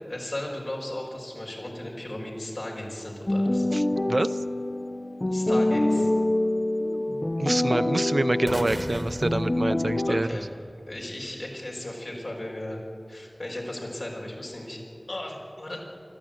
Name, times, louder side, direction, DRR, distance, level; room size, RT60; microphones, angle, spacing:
voice 1, 0.1-3.7 5.3-6.1 10.1-10.4 10.9-12.8 13.1-14.8 15.1-15.8, left 1 dB, 70° left, -2 dB, 5.4 m, -36 dB
sound 1, 3.3-10.2, left 1 dB, 35° left, 0.9 m, -26 dB
voice 2, 3.7-4.4 6.8-10.3, right 2 dB, 55° right, 12 dB, 0.6 m, -27 dB
sound 2, 8.5-10.6, right 1 dB, 25° right, 1.4 m, -36 dB
24.5 x 13.5 x 9.1 m, 2.4 s
wide cardioid pair, 45°, 0 cm